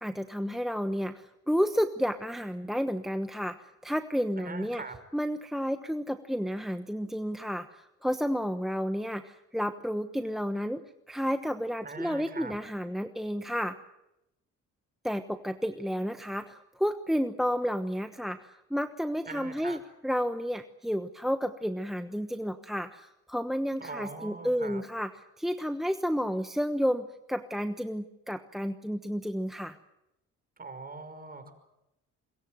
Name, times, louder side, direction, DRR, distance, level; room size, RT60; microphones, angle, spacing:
voice 1, 0.0-4.8 5.1-10.8 11.1-13.8 15.0-19.8 20.0-25.1 25.4-29.8, equal, ahead, 8 dB, 1.2 m, -31 dB
voice 2, 4.4-5.0 11.8-12.6 19.3-19.8 23.8-24.8 30.6-31.5, right 4 dB, 30° right, 9 dB, 5.5 m, -42 dB
26.0 x 22.5 x 7.8 m, 0.89 s
cardioid pair, 90°, 30 cm